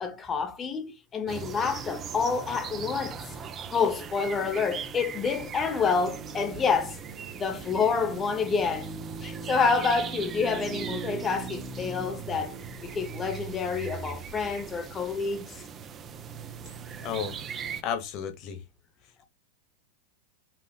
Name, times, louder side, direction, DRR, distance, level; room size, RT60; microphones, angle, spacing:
voice 1, 0.0-3.2 3.7-7.0 7.3-8.9 9.2-12.5 12.8-15.6, left 5 dB, 25° left, 0.8 m, -28 dB
sound 1, 1.3-17.8, right 6 dB, 30° right, 0.6 m, -39 dB
voice 2, 16.7-17.4 17.8-18.6, left 8 dB, 45° left, 1.0 m, -33 dB
5.8 x 2.4 x 2.3 m
hypercardioid pair, 105°, 0 cm